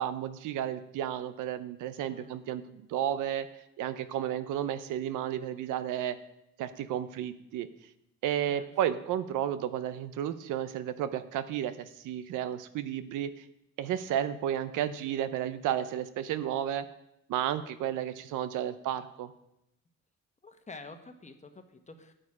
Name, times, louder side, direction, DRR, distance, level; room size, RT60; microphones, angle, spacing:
voice 1, 0.0-3.5 3.8-6.2 6.6-7.7 8.2-13.4 13.8-16.9 17.3-19.3, right 10 dB, 90° right, 12 dB, 0.7 m, -32 dB
voice 2, 8.5-9.0 20.4-22.1, left 3 dB, 25° left, 7 dB, 1.2 m, -49 dB
9.0 x 8.5 x 4.9 m, 0.82 s
cardioid pair, 90°, 30 cm